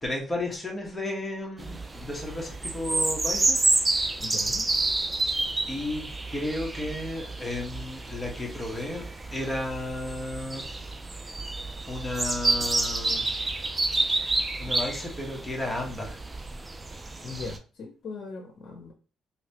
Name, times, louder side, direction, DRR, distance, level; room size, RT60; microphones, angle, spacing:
voice 1, 0.0-3.6 5.7-10.6 11.9-13.2 14.6-16.2, left 1 dB, 10° left, 1.2 m, -33 dB
sound 1, 1.6-17.6, right 2 dB, 25° right, 0.4 m, -29 dB
voice 2, 4.2-4.6 17.2-18.9, left 4 dB, 65° left, 0.7 m, -39 dB
3.2 x 2.9 x 2.9 m
cardioid pair, 90°, 0 cm